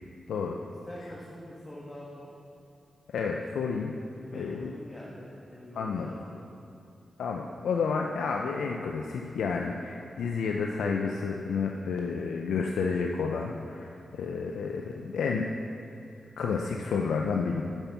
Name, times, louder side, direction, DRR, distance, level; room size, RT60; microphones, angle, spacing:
voice 1, 0.7-2.3 4.1-6.5, left 1 dB, 30° left, -5 dB, 1.6 m, -45 dB
voice 2, 3.1-3.9 4.3-4.7 5.8-6.1 7.2-15.5 16.4-17.6, left 5 dB, 90° left, 1 dB, 0.4 m, -30 dB
8.8 x 5.9 x 6.0 m, 2.5 s
cardioid pair, 50°, 0 cm